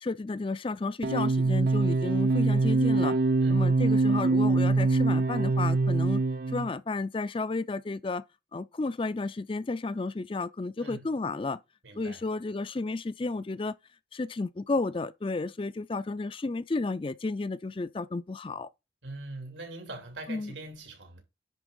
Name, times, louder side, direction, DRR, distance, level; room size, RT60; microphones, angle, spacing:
voice 1, 0.0-3.2 3.5-6.2 6.5-8.2 8.5-11.6 11.9-13.7 14.1-18.7 20.3-20.5, left 3 dB, 30° left, 0.4 m, -32 dB
sound 1, 1.0-6.7, right 3 dB, 55° right, 0.6 m, -24 dB
voice 2, 11.8-12.3 19.0-21.2, right 2 dB, 90° right, 2.7 m, -42 dB
10.0 x 3.4 x 5.4 m
head